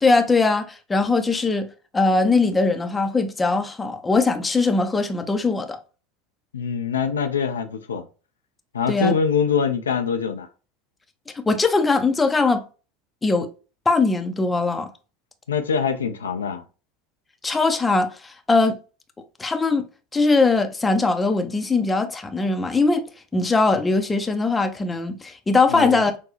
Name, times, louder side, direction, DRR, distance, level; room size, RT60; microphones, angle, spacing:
voice 1, 0.0-1.7 1.9-5.8 8.9-9.1 11.3-12.6 13.2-13.5 13.9-14.9 17.4-18.8 19.4-19.8 20.1-23.1 23.3-26.1, left 3 dB, 15° left, 0.7 m, -20 dB
voice 2, 6.5-8.1 8.7-10.5 15.5-16.6 25.7-26.0, left 6 dB, 80° left, 0.6 m, -24 dB
6.2 x 2.3 x 3.1 m
figure-of-eight pair, 80°, 0 cm